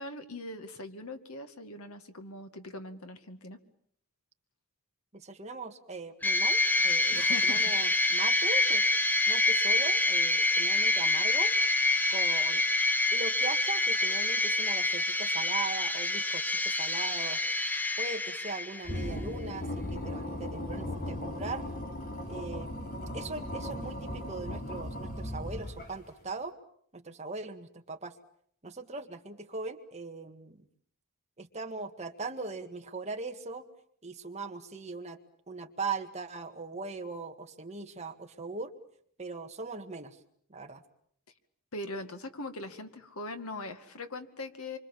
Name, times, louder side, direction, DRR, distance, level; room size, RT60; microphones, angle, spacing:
voice 1, 0.0-3.6 7.1-8.0 41.7-44.8, left 2 dB, 90° left, 8 dB, 2.2 m, -41 dB
voice 2, 5.1-8.8 9.3-11.5 12.1-12.6 13.1-17.4 18.0-21.6 22.3-22.9 23.1-26.5 26.9-28.2 28.6-30.6 31.4-33.7 34.0-35.2 35.5-38.7 39.2-40.2 40.5-40.8, right 4 dB, 30° right, 5 dB, 1.8 m, -40 dB
sound 1, 6.2-19.1, left 2 dB, 10° left, 1.0 m, -27 dB
sound 2, 18.8-26.1, left 1 dB, 40° left, 4.3 m, -37 dB
27.0 x 25.0 x 7.3 m, 0.65 s
head